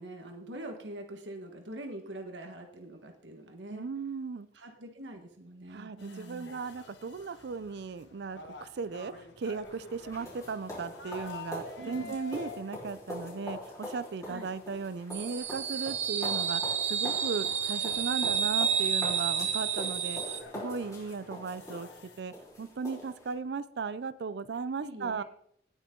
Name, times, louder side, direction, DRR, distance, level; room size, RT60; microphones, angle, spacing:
voice 1, 0.0-3.9 4.5-6.6 11.8-12.2 14.3-14.5 24.8-25.2, right 1 dB, 85° right, 4 dB, 1.5 m, -44 dB
voice 2, 3.7-4.5 5.7-25.2, right 5 dB, 65° right, 15 dB, 0.5 m, -37 dB
sound 1, 6.0-13.2 13.9-14.1 14.5-14.6 15.2-15.3 15.7-15.8 16.0-22.2, left 4 dB, 80° left, 1.6 m, -50 dB
sound 2, 9.6-23.3, left 1 dB, 20° left, 4.0 m, -43 dB
sound 3, 15.1-20.4, right 7 dB, 40° right, 0.8 m, -30 dB
18.5 x 6.3 x 3.8 m, 0.67 s
head